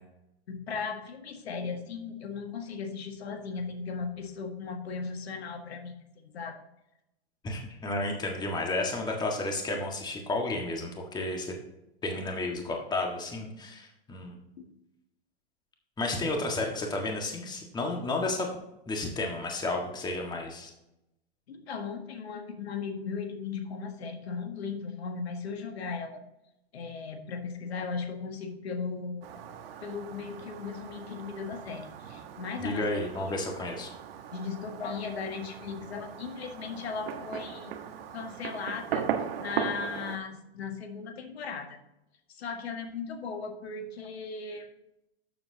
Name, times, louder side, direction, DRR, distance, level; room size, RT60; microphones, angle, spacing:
voice 1, 0.5-6.0 6.2-6.6 14.6-14.7 21.5-26.2 26.7-29.4 29.8-33.5 34.3-37.8 38.1-39.1 39.4-41.8 42.3-44.7, left 5 dB, 80° left, 5 dB, 1.6 m, -37 dB
voice 2, 7.4-11.6 12.0-14.4 16.0-18.5 18.8-20.7 32.6-33.9, left 2 dB, 15° left, 1 dB, 1.6 m, -32 dB
Fireworks, 29.2-40.2, right 8 dB, 65° right, 1.3 m, -38 dB
12.5 x 7.2 x 2.8 m, 0.89 s
hypercardioid pair, 130°, 31 cm